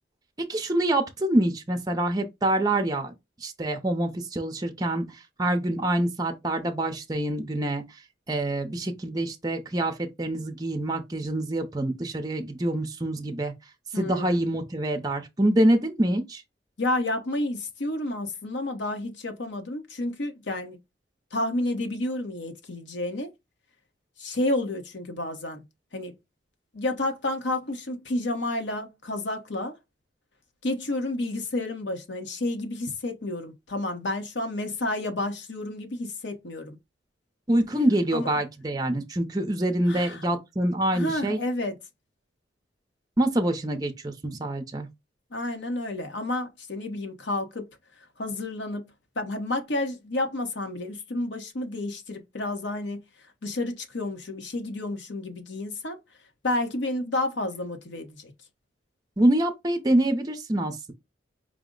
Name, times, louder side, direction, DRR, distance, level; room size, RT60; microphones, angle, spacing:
voice 1, 0.4-3.1 3.4-5.0 5.4-7.8 8.3-13.5 13.9-16.4 37.5-41.4 43.2-44.9 59.2-60.9, right 1 dB, 20° right, 0.6 m, -25 dB
voice 2, 13.9-14.4 16.8-20.8 21.3-23.3 24.2-25.6 25.9-26.1 26.7-29.7 30.6-36.8 38.1-38.3 39.9-40.2 40.9-41.8 45.3-47.7 48.2-53.0 53.4-56.0 56.4-58.3, left 2 dB, 80° left, 0.9 m, -30 dB
4.9 x 2.0 x 3.7 m
head